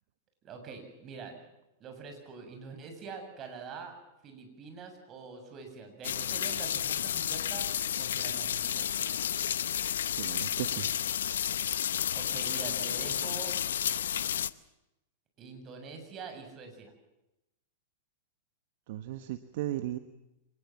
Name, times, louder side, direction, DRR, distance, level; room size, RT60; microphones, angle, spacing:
voice 1, 0.4-1.4 1.8-4.0 4.2-7.7 8.0-8.9 12.1-13.6 15.4-16.9, right 5 dB, 35° right, 5 dB, 7.5 m, -44 dB
sound 1, 6.0-14.5, left 9 dB, 75° left, 0.8 m, -31 dB
voice 2, 10.2-10.9 18.9-20.0, right 14 dB, 60° right, 10 dB, 1.4 m, -36 dB
26.0 x 20.5 x 7.4 m, 0.91 s
hypercardioid pair, 110°, 0 cm